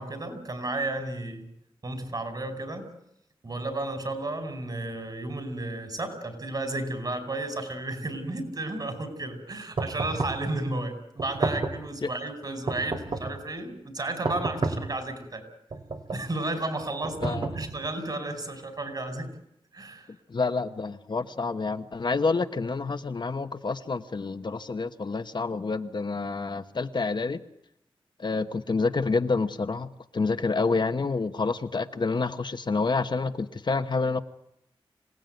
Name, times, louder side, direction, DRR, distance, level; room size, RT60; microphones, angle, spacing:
voice 1, 0.0-1.4 1.8-2.9 3.4-15.5 16.1-19.3 19.7-20.1, right 2 dB, 45° right, 8 dB, 5.2 m, -33 dB
sound 1, 9.8-10.5 11.2-11.9 12.7-13.4 14.2-15.0 15.7-16.3 17.0-17.9, right 3 dB, 70° right, 3.1 m, -31 dB
voice 2, 20.3-27.4 28.2-34.2, left 4 dB, 55° left, 8 dB, 1.2 m, -28 dB
26.5 x 17.5 x 9.2 m, 0.79 s
wide cardioid pair, 90°, 9 cm